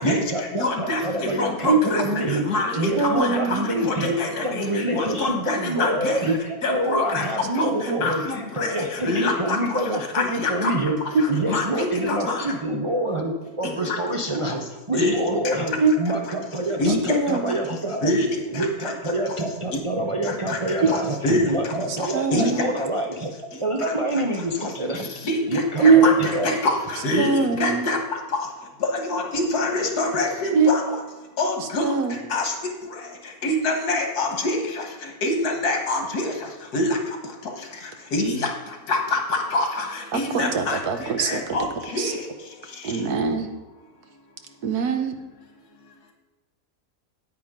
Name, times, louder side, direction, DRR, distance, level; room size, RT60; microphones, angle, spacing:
voice 1, 0.0-2.4 2.8-11.0 11.3-18.1 18.5-23.3 23.6-25.1 25.5-26.6, right 1 dB, 50° right, 1 dB, 0.3 m, -27 dB
voice 2, 0.6-1.0 1.4-2.0 2.5-4.7 4.9-6.2 6.6-7.2 7.6-7.7 8.0-9.6 10.1-10.7 11.2-12.4 14.9-15.1 16.8-17.2 18.0-18.3 18.6-18.7 20.5-20.6 20.9-21.0 21.2-21.5 22.3-22.5 25.3-25.4 25.8-28.0 29.1-30.8 31.4-31.9 32.3-32.5 33.4-34.6 35.2-36.3 36.7-37.0 38.1-38.5 38.9-39.9 40.1-40.8 41.2-41.7 41.9-42.0, left 2 dB, 90° left, 3 dB, 1.9 m, -25 dB
voice 3, 3.0-3.6 7.9-8.0 15.8-15.9 17.1-17.5 22.1-22.6 25.8-26.1 27.2-27.9 30.5-30.7 31.8-32.1 40.1-41.4 42.0-42.1 42.8-43.5 44.6-45.1, right 5 dB, 90° right, 7 dB, 1.4 m, -21 dB
9.3 x 9.2 x 3.6 m, 1.2 s
omnidirectional pair, 1.6 m